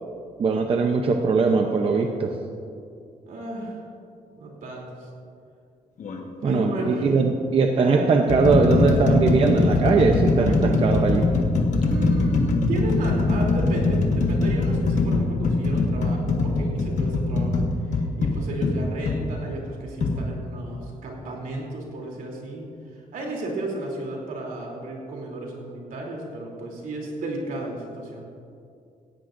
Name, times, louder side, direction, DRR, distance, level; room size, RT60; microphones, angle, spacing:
voice 1, 0.4-2.3 6.4-11.3, right 4 dB, 40° right, 3 dB, 0.7 m, -20 dB
voice 2, 3.3-3.8 4.3-5.1 6.4-7.4 7.8-8.2 11.7-22.7 22.9-28.3, right 2 dB, 75° right, -1 dB, 3.1 m, -34 dB
sound 1, 6.0-6.2 7.1-7.3 7.9-19.2 20.0-20.2, left 3 dB, 60° left, 1.4 m, -22 dB
18.0 x 16.0 x 2.6 m, 2.5 s
wide cardioid pair, 175°, 14 cm